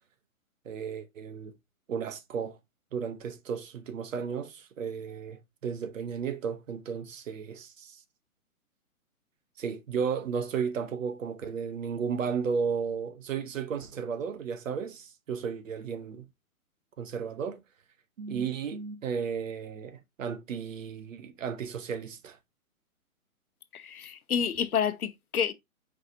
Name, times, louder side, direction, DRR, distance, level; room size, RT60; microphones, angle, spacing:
voice 1, 0.6-1.6 1.9-2.6 2.9-8.0 9.6-16.3 17.0-17.6 18.2-22.4, right 6 dB, 65° right, 1.0 m, -34 dB
voice 2, 23.7-25.5, left 7 dB, 85° left, 0.8 m, -29 dB
4.8 x 4.0 x 2.6 m
hypercardioid pair, 135°, 43 cm